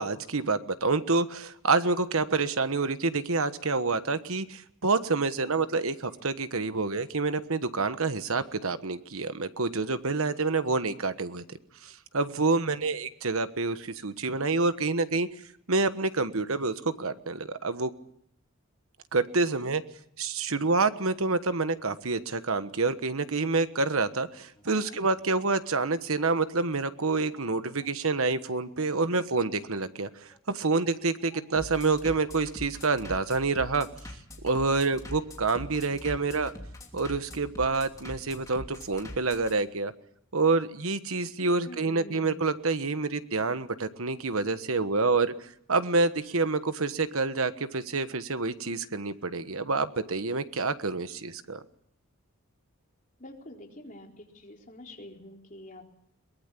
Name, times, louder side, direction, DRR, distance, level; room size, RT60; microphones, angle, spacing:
voice 1, 0.0-11.4 11.8-15.3 15.7-17.9 19.1-19.8 20.2-33.9 34.4-36.5 36.9-39.9 40.3-45.3 45.7-51.6, right 3 dB, 70° right, 11 dB, 1.3 m, -27 dB
Bass drum, 23.6-39.5, left 1 dB, 15° left, 3.0 m, -44 dB
voice 2, 24.6-25.0 41.6-42.4 53.2-55.9, left 1 dB, 35° left, 0 dB, 4.0 m, -47 dB
22.5 x 20.5 x 8.4 m, 0.72 s
head